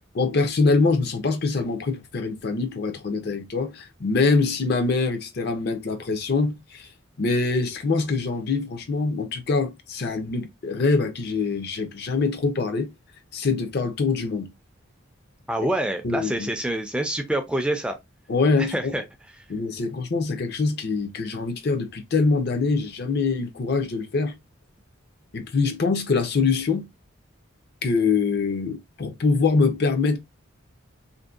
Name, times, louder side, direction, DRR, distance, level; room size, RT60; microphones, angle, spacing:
voice 1, 0.1-6.9 7.2-12.9 13.3-14.5 16.0-16.5 18.3-18.9 19.5-24.4 25.3-26.9 27.8-30.2, left 4 dB, 50° left, 0.5 m, -24 dB
voice 2, 15.5-18.0 18.6-19.0, right 1 dB, 5° right, 0.3 m, -26 dB
2.6 x 2.1 x 2.3 m
head